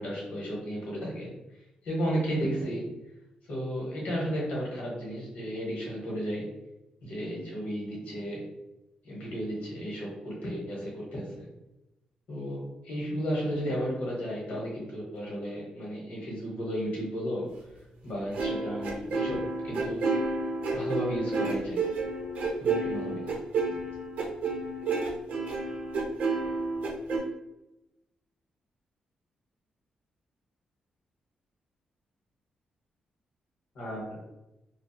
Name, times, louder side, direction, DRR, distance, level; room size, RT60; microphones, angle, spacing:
voice 1, 0.0-1.3 1.8-2.9 3.5-6.5 7.0-8.4 9.0-11.5 12.3-17.5 18.0-20.2 20.7-21.8 22.6-23.3 33.7-34.2, equal, 80° left, -4 dB, 1.0 m, -33 dB
sound 1, 18.3-27.2, right 3 dB, 80° right, 0.6 m, -30 dB
2.7 x 2.2 x 2.3 m, 0.93 s
wide cardioid pair, 165°, 3 cm